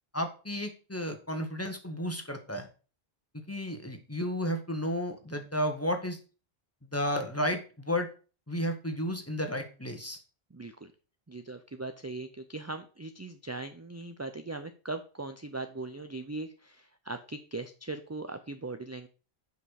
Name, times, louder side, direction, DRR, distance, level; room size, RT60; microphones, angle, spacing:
voice 1, 0.1-2.7 3.5-6.2 6.9-8.1 8.5-10.2, equal, 15° left, 5 dB, 1.4 m, -32 dB
voice 2, 10.5-10.9 11.3-19.1, right 2 dB, 20° right, 8 dB, 0.5 m, -39 dB
7.8 x 5.6 x 6.4 m, 0.35 s
omnidirectional pair, 1.0 m